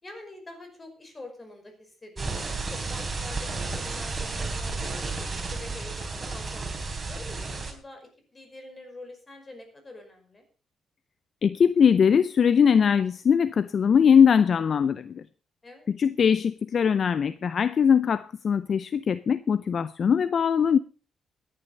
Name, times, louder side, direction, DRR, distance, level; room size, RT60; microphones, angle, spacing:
voice 1, 0.0-10.4 15.6-15.9, left 2 dB, 25° left, 5 dB, 5.3 m, -46 dB
sound 1, 2.2-7.7, right 3 dB, 30° right, 3.8 m, -32 dB
voice 2, 11.4-15.2 15.9-20.8, left 7 dB, 50° left, 16 dB, 0.5 m, -21 dB
14.5 x 10.5 x 5.3 m, 0.36 s
cardioid pair, 110°, 0 cm